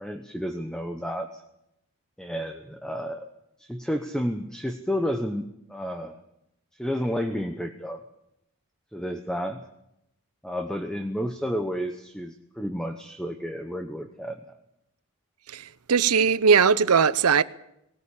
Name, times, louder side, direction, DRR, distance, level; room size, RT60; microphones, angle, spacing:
voice 1, 0.0-1.4 2.2-3.3 3.6-6.2 6.7-8.0 8.9-9.6 10.4-14.5, equal, 5° left, 1.0 m, -31 dB
voice 2, 15.5-17.4, right 6 dB, 90° right, 0.8 m, -20 dB
19.5 x 18.5 x 8.5 m
head